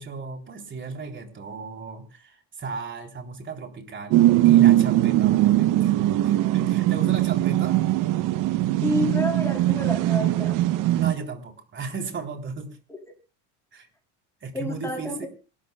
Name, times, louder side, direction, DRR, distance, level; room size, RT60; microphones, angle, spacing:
voice 1, 0.0-5.9 6.2-7.8 10.9-12.8 13.7-13.9 14.4-15.3, right 4 dB, 30° right, 4 dB, 3.7 m, -35 dB
sound 1, 4.1-11.1, right 14 dB, 60° right, 0.9 m, -20 dB
voice 2, 8.8-10.6 12.9-13.0 14.5-15.3, left 1 dB, 5° left, 2 dB, 6.5 m, -29 dB
27.0 x 13.0 x 2.3 m, 0.34 s
supercardioid pair, 95°, 36 cm